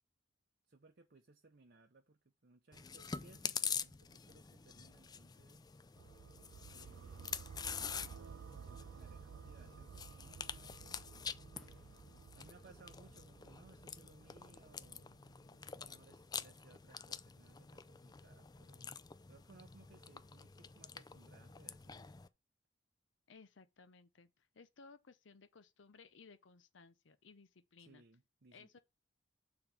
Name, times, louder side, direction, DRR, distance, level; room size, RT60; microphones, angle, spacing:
voice 1, 0.7-5.6 6.7-7.5 8.0-11.1 12.3-15.2 15.5-18.9 19.3-22.1 27.8-28.8, right 3 dB, 55° right, 0.7 m, -64 dB
Chewing mastication, 2.7-22.3, left 6 dB, 20° left, 0.4 m, -47 dB
sound 1, 6.0-15.9, right 6 dB, 80° right, 0.4 m, -55 dB
Fireworks, 11.5-14.2 14.5-16.4, equal, ahead, 1.5 m, -67 dB
voice 2, 23.3-28.0 28.5-28.8, left 4 dB, 70° left, 0.7 m, -60 dB
6.9 x 3.9 x 5.9 m
head